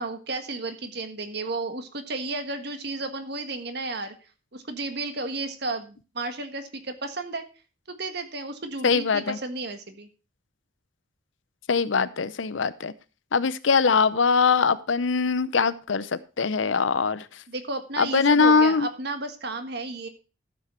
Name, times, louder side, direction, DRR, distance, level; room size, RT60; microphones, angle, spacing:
voice 1, 0.0-4.1 4.5-7.4 7.9-10.1 17.5-20.1, right 2 dB, 60° right, 8 dB, 1.5 m, -33 dB
voice 2, 8.8-9.4 11.7-12.9 13.3-17.3 18.0-18.9, left 5 dB, 90° left, 16 dB, 0.7 m, -22 dB
13.0 x 7.2 x 4.3 m, 0.33 s
head